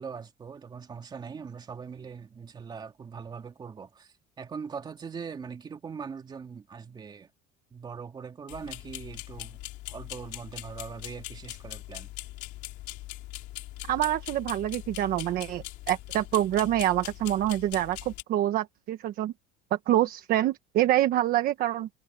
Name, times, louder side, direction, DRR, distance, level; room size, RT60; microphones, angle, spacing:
voice 1, 0.0-7.3 7.7-9.6 9.9-12.1, right 6 dB, 20° right, 2.8 m, -41 dB
sound 1, 8.5-18.2, left 17 dB, 60° left, 3.2 m, -41 dB
voice 2, 13.9-19.3 19.7-21.9, right 13 dB, 50° right, 1.3 m, -26 dB
cardioid pair, 160°, 20 cm